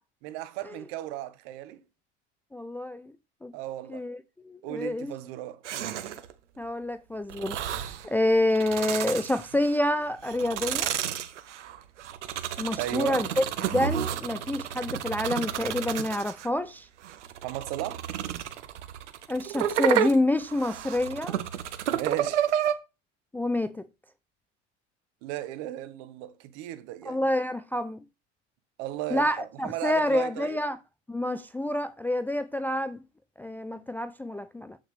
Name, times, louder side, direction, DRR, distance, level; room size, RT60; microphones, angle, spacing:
voice 1, 0.2-1.8 3.5-4.0 4.6-5.6 12.8-13.3 17.4-18.1 21.9-22.4 25.2-27.3 28.8-30.6, right 14 dB, 60° right, 1.4 m, -35 dB
voice 2, 2.5-3.1 3.4-3.5 3.9-4.2 4.5-5.1 6.6-7.6 8.0-10.9 12.6-16.9 19.3-21.4 23.3-23.8 27.1-28.0 29.1-30.8 31.1-33.0 33.4-34.8, left 1 dB, 5° left, 0.4 m, -28 dB
sound 1, 5.6-6.3 7.3-8.1 8.5-9.8 10.2-16.5 17.0-22.7, right 10 dB, 85° right, 1.1 m, -31 dB
8.5 x 5.9 x 3.3 m
hypercardioid pair, 100°, 34 cm